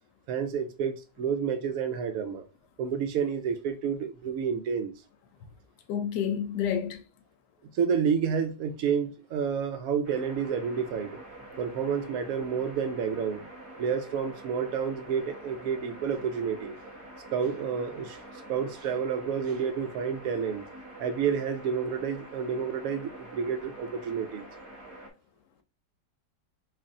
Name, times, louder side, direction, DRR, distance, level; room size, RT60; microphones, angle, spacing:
voice 1, 0.3-2.4 2.8-4.9 7.7-11.2 11.6-13.4 13.8-16.8 17.3-18.2 18.5-20.6 21.0-24.4, right 7 dB, 65° right, 0.9 m, -29 dB
voice 2, 5.9-7.0, left 8 dB, 75° left, 1.2 m, -29 dB
sound 1, 10.0-25.1, right 1 dB, 25° right, 0.7 m, -46 dB
3.3 x 2.5 x 3.6 m
omnidirectional pair, 1.9 m